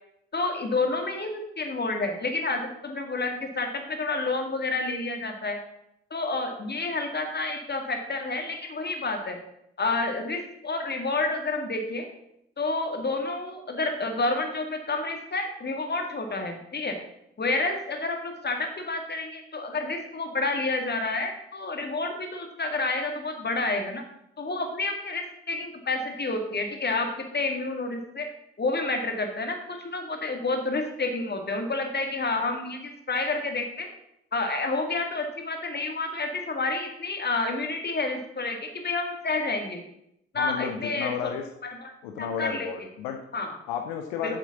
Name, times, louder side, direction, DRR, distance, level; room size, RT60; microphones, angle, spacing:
voice 1, 0.3-5.6 6.1-9.4 9.8-12.1 12.6-17.0 17.4-24.0 24.4-28.3 28.6-33.9 34.3-39.8 40.3-41.3 41.6-41.9 42.2-42.7 43.3-43.5 44.2-44.4, left 3 dB, 35° left, 4 dB, 2.0 m, -29 dB
voice 2, 40.4-41.4 42.0-43.2 43.7-44.4, left 8 dB, 75° left, 4 dB, 0.7 m, -32 dB
7.7 x 7.2 x 5.9 m, 0.78 s
figure-of-eight pair, 40°, 30 cm